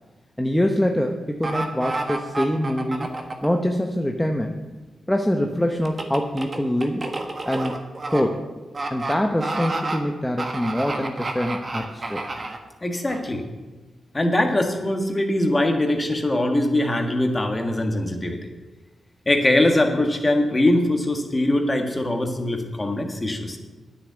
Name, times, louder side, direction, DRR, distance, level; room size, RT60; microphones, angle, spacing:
voice 1, 0.4-3.1 3.4-4.6 5.1-7.0 7.4-7.8 8.1-8.4 8.9-12.2, equal, 5° left, 3 dB, 0.9 m, -24 dB
sound 1, 1.4-3.5 5.9-8.2 8.7-9.1 9.4-10.0 10.4-12.6 13.1-13.2, right 2 dB, 40° right, 1.4 m, -29 dB
voice 2, 12.8-13.4 14.1-18.5 19.2-23.6, left 1 dB, 25° left, 4 dB, 1.7 m, -22 dB
9.7 x 6.6 x 8.1 m, 1.2 s
cardioid pair, 65°, 0 cm